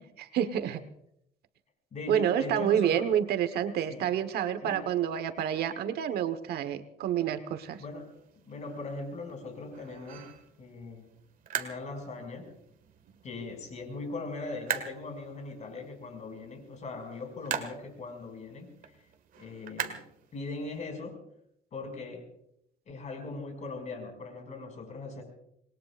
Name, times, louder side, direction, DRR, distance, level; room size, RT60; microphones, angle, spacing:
voice 1, 0.2-0.8 2.1-7.8, right 9 dB, 70° right, 10 dB, 1.3 m, -28 dB
voice 2, 1.9-3.1 3.9-4.1 4.6-4.9 7.8-8.1 8.5-10.3 10.6-11.0 11.5-12.5 13.2-18.7 19.3-20.0 20.3-21.2 21.7-22.3 22.9-25.2, left 3 dB, 45° left, 3 dB, 6.1 m, -40 dB
sound 1, 7.6-20.8, right 8 dB, 55° right, 1.8 m, -42 dB
27.0 x 20.5 x 2.5 m, 0.75 s
cardioid pair, 110°, 17 cm